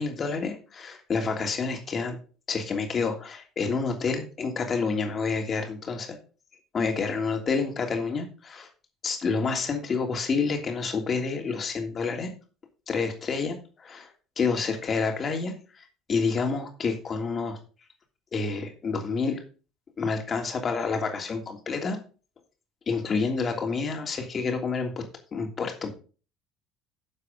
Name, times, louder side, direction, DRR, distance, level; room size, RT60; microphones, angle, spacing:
voice 1, 0.0-2.2 2.5-6.2 6.7-8.7 9.0-12.3 12.9-13.6 13.8-14.1 14.4-15.8 16.1-17.6 18.3-19.4 20.0-22.0 22.9-25.0 25.3-25.9, left 4 dB, 35° left, 3 dB, 3.0 m, -28 dB
12.0 x 7.4 x 3.9 m, 0.37 s
figure-of-eight pair, 60°, 0 cm